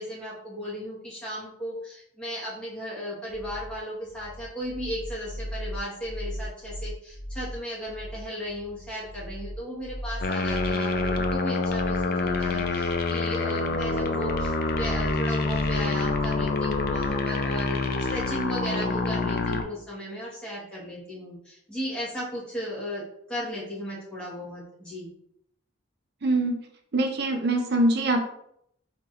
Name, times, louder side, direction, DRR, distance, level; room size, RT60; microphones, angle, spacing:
voice 1, 0.0-17.8 18.1-23.0 23.3-25.1, equal, 5° left, -8 dB, 1.2 m, -35 dB
sound 1, 3.3-18.3, equal, 75° right, 1.2 m, -38 dB
sound 2, 10.2-19.6, left 3 dB, 45° left, 0.4 m, -27 dB
voice 2, 26.2-26.6 26.9-28.2, right 1 dB, 50° right, 3 dB, 0.5 m, -23 dB
4.5 x 3.0 x 2.4 m, 0.72 s
head